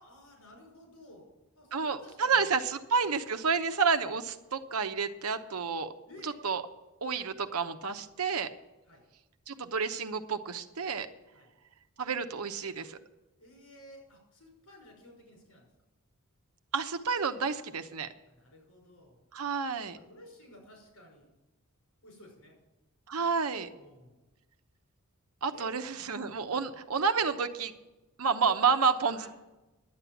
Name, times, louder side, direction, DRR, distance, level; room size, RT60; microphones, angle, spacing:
voice 1, 0.0-2.5 6.1-6.3 8.9-9.0 11.3-11.5 13.4-15.7 18.3-19.2 19.9-21.3 22.0-22.6 23.7-24.1 25.5-25.7 26.5-26.6 29.1-29.3, left 1 dB, 85° left, 0 dB, 5.7 m, -54 dB
voice 2, 1.7-5.9 6.2-6.6 7.0-8.5 9.5-11.1 12.0-13.0 16.7-18.1 19.3-20.0 23.1-23.7 25.4-27.7 28.2-29.3, right 5 dB, 80° right, 8 dB, 0.9 m, -30 dB
11.5 x 8.6 x 7.2 m, 1.1 s
head